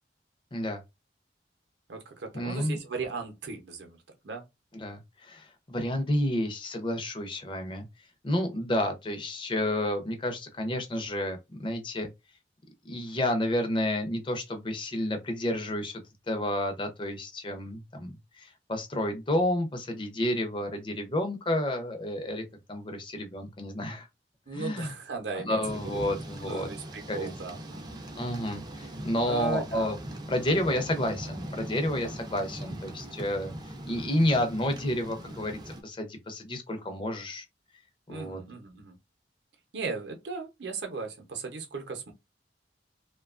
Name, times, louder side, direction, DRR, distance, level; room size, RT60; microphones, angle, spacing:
voice 1, 0.5-0.8 2.3-2.8 4.7-7.9 8.2-12.1 12.8-16.0 16.3-24.1 24.5-24.9 25.3-26.7 27.1-27.3 28.2-30.0 30.3-33.5 33.9-37.4 38.1-38.4, left 1 dB, 25° left, 0.6 m, -30 dB
voice 2, 1.9-4.4 24.5-26.0 26.4-28.0 29.3-30.0 32.5-33.2 38.1-39.0 39.7-42.1, right 4 dB, 70° right, 0.7 m, -37 dB
Thunder / Rain, 25.6-35.8, right 1 dB, 25° right, 0.4 m, -40 dB
2.8 x 2.2 x 2.4 m
head